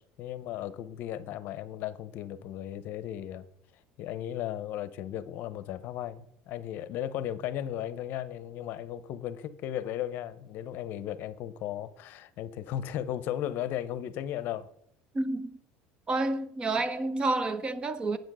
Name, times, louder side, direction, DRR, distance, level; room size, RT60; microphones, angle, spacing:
voice 1, 0.2-3.5 4.0-14.7, left 11 dB, 50° left, 0.8 m, -36 dB
voice 2, 15.1-15.5 16.1-18.2, right 2 dB, 20° right, 0.8 m, -29 dB
9.1 x 7.9 x 6.2 m
cardioid pair, 145°, 4 cm